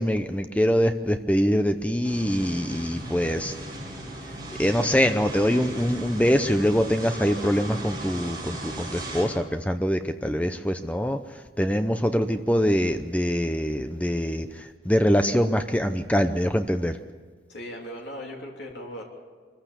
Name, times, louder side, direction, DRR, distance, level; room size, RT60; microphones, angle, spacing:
voice 1, 0.0-3.5 4.6-11.2 11.6-17.0, equal, 10° left, 8 dB, 0.6 m, -24 dB
sound 1, 2.0-9.2, right 1 dB, 20° right, 7.7 m, -37 dB
voice 2, 17.5-19.0, equal, 75° left, -1 dB, 3.2 m, -38 dB
24.5 x 15.0 x 8.4 m, 1.5 s
head